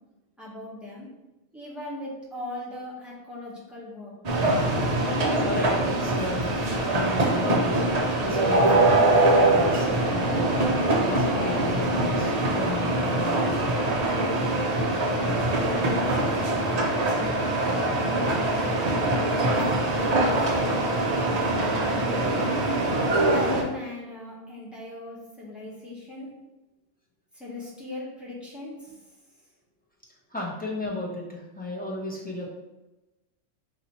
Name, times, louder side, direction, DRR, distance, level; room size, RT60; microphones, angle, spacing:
voice 1, 0.4-1.1 1.5-4.1 15.0-16.8 17.1-19.1 19.5-21.0 21.6-22.3 23.0-26.3 27.3-28.9, left 1 dB, ahead, -6 dB, 1.0 m, -39 dB
sound 1, 4.2-23.6, right 2 dB, 45° right, 0.5 m, -23 dB
voice 2, 5.4-6.6 6.9-7.8 8.2-9.2 9.5-10.5 10.9-13.7 30.3-32.5, left 1 dB, 15° left, -4 dB, 0.3 m, -35 dB
4.1 x 2.8 x 4.1 m, 1.0 s
omnidirectional pair, 1.4 m